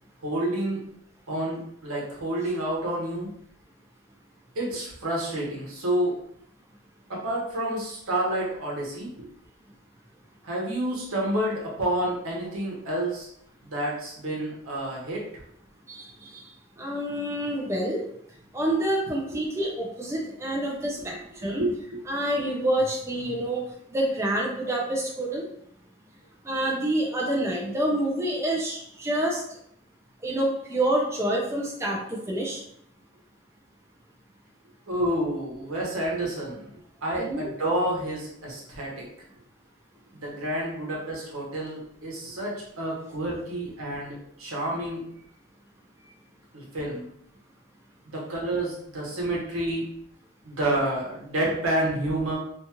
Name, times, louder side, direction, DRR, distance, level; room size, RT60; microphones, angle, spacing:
voice 1, 0.2-0.9 1.3-3.3 4.5-6.1 7.1-9.3 10.4-13.3 13.6-15.3 21.6-22.0 34.9-36.7 37.0-39.1 40.1-45.0 46.5-47.1 48.1-49.8 50.4-52.4, right 1 dB, 90° right, -3 dB, 1.0 m, -29 dB
voice 2, 16.8-18.0 18.5-21.2 21.4-21.6 22.1-23.6 23.9-25.5 26.5-29.4 30.2-32.6 37.2-37.5, right 1 dB, 15° right, -2 dB, 0.4 m, -27 dB
2.6 x 2.3 x 2.8 m, 0.71 s
head